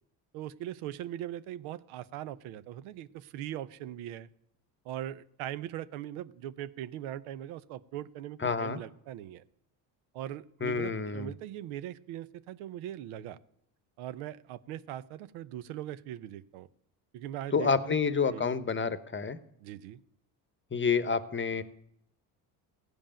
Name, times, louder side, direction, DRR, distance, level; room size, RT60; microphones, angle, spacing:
voice 1, 0.3-4.3 4.8-9.4 10.1-13.4 14.0-16.7 17.1-18.0 18.3-18.5 19.6-20.0, right 12 dB, 75° right, 15 dB, 0.8 m, -40 dB
voice 2, 8.4-8.8 10.6-11.3 17.5-19.4 20.7-21.6, left 5 dB, 25° left, 14 dB, 0.9 m, -29 dB
15.0 x 5.3 x 8.8 m, 0.73 s
supercardioid pair, 70°, 49 cm